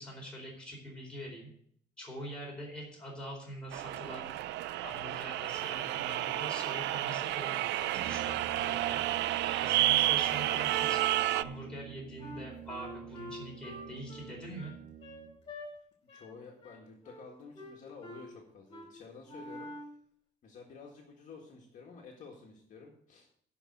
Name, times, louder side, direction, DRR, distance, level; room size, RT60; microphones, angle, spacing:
voice 1, 0.0-1.5 2.0-4.3 4.8-9.0 9.6-11.0 11.3-14.7, equal, 5° left, -3 dB, 4.1 m, -44 dB
sound 1, 3.7-11.4, right 15 dB, 85° right, 0.5 m, -31 dB
Brass instrument, 7.9-15.4, right 10 dB, 50° right, 0.8 m, -46 dB
voice 2, 9.6-9.9 16.0-19.7 20.4-23.3, left 5 dB, 45° left, 0 dB, 1.9 m, -51 dB
Wind instrument woodwind instrument, 12.2-15.7 16.1-16.3 16.6-17.3 17.5-18.3 18.7-18.9 19.2-20.0, left 1 dB, 30° left, 2.8 m, -46 dB
11.5 x 5.4 x 7.7 m, 0.65 s
cardioid pair, 170°, 18 cm